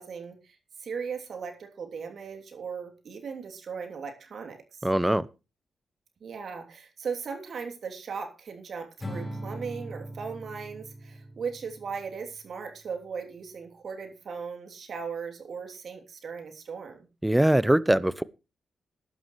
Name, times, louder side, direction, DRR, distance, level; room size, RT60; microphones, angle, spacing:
voice 1, 0.0-4.8 6.2-17.1, right 5 dB, 65° right, 3.1 m, -38 dB
voice 2, 4.8-5.3 17.2-18.2, right 1 dB, 10° right, 0.9 m, -22 dB
Acoustic guitar / Strum, 9.0-12.3, equal, 30° left, 4.5 m, -40 dB
16.5 x 11.5 x 3.2 m
hypercardioid pair, 40°, 0 cm